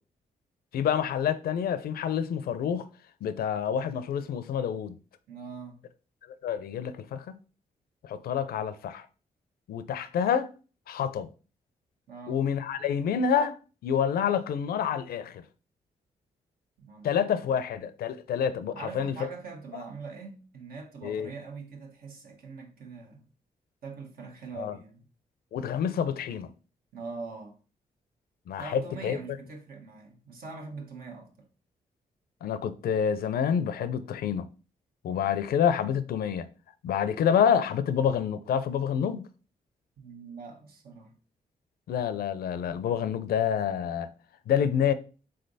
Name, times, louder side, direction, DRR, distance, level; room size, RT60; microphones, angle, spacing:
voice 1, 0.7-2.9 3.2-4.9 6.4-7.3 8.0-9.1 9.7-10.5 10.9-11.3 12.3-13.6 13.8-15.4 17.0-19.3 21.0-21.3 24.5-24.8 25.5-26.5 28.5-29.2 32.4-34.5 35.0-36.5 36.8-39.3 41.9-44.1 44.5-44.9, left 8 dB, 80° left, 0.5 m, -28 dB
voice 2, 5.3-5.8 12.1-12.5 16.8-17.6 18.7-23.3 23.8-25.1 26.9-27.5 28.6-31.5 40.0-41.2, right 4 dB, 75° right, 1.2 m, -43 dB
3.8 x 3.3 x 4.0 m
cardioid pair, 70°, 16 cm